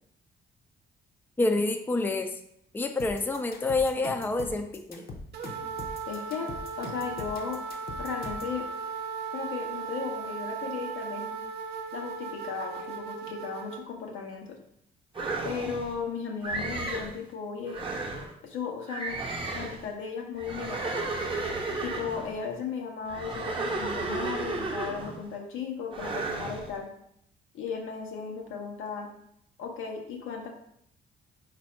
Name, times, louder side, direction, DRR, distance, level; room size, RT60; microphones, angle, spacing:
voice 1, 1.4-2.3 2.7-5.1, left 2 dB, 10° left, 5 dB, 0.4 m, -28 dB
sound 1, 3.0-8.6, left 3 dB, 50° left, 0.8 m, -42 dB
sound 2, 5.3-13.8, right 5 dB, 55° right, 0.6 m, -37 dB
voice 2, 6.1-7.6 8.0-8.7 9.3-11.4 11.9-14.6 15.4-17.8 18.4-19.2 19.5-21.1 21.8-26.9 27.5-29.1 29.6-30.5, left 6 dB, 85° left, 1 dB, 0.9 m, -36 dB
sound 3, 15.1-15.9 16.4-17.2 17.7-18.3 18.9-19.9 20.4-22.3 23.1-25.3 25.9-26.7, right 3 dB, 25° right, 0.8 m, -33 dB
4.1 x 2.6 x 4.3 m, 0.72 s
cardioid pair, 90°, 20 cm